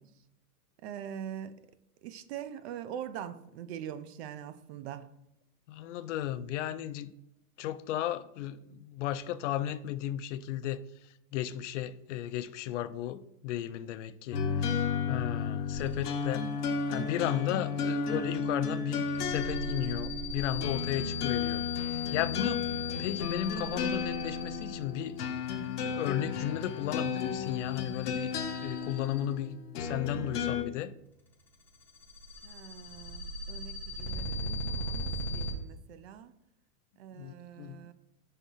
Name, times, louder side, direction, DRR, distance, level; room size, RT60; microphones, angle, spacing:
voice 1, 0.8-1.6 2.0-5.1 22.9-23.1 32.4-36.3 37.0-37.9, right 9 dB, 45° right, 0.5 m, -43 dB
voice 2, 5.7-7.1 7.6-10.8 11.3-16.4 16.9-22.7 23.0-25.2 25.8-28.3 28.6-30.9 37.2-37.9, left 12 dB, 55° left, 0.5 m, -35 dB
sound 1, 14.3-30.6, left 6 dB, 90° left, 1.2 m, -33 dB
sound 2, 15.7-16.3 16.7-17.2 19.0-29.5 31.4-35.5, left 1 dB, 5° left, 0.5 m, -39 dB
5.6 x 3.6 x 5.5 m
supercardioid pair, 145°, 45 cm